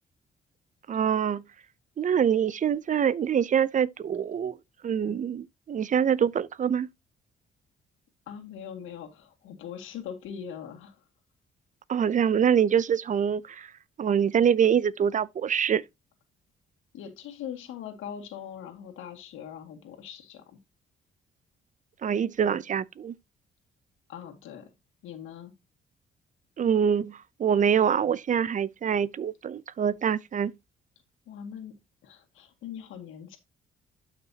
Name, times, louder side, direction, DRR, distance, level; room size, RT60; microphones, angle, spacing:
voice 1, 0.9-1.4 2.0-4.6 4.8-6.9 11.9-13.7 14.0-15.8 22.0-23.1 26.6-30.5, right 8 dB, 40° right, 0.6 m, -25 dB
voice 2, 8.3-11.0 16.9-20.6 24.1-24.7 25.0-25.5 31.3-31.8 32.0-33.4, left 8 dB, 90° left, 2.1 m, -41 dB
12.0 x 5.9 x 2.8 m
cardioid pair, 90°, 20 cm